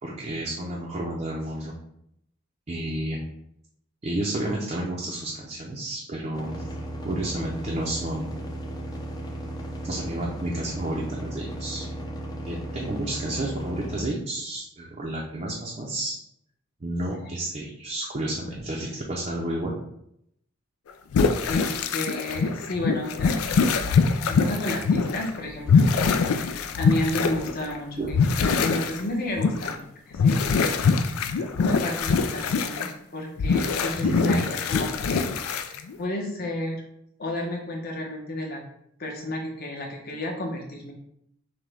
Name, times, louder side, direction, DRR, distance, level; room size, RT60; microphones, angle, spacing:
voice 1, 0.0-1.7 2.7-3.2 4.0-6.7 7.0-8.3 9.8-11.9 12.5-16.2 16.8-19.7 28.0-28.2 34.0-34.5, right 1 dB, 35° right, -3 dB, 0.5 m, -31 dB
sound 1, 6.3-14.0, right 1 dB, 20° left, 0.5 m, -35 dB
sound 2, 21.1-25.4 25.6-27.8 28.1-29.0 29.3-29.7 30.1-32.9 33.4-35.9, left 5 dB, 85° left, 0.4 m, -23 dB
voice 2, 21.5-23.4 24.0-36.8 37.2-38.6 39.0-40.9, left 1 dB, 45° left, 0 dB, 0.8 m, -32 dB
6.0 x 2.2 x 3.4 m, 0.76 s
head